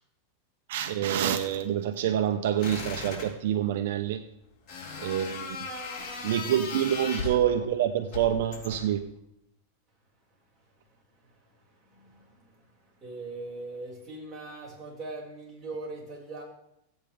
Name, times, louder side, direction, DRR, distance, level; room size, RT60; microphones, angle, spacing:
voice 1, 0.7-4.2 5.0-5.6 6.2-9.0, right 10 dB, 70° right, 0.8 m, -27 dB
sound 1, 2.6-3.3 4.7-7.5 8.1-9.0, left 4 dB, 40° left, 4.5 m, -37 dB
voice 2, 11.2-16.4, right 2 dB, 15° right, 5.4 m, -41 dB
16.5 x 8.9 x 3.5 m
supercardioid pair, 145°, 0 cm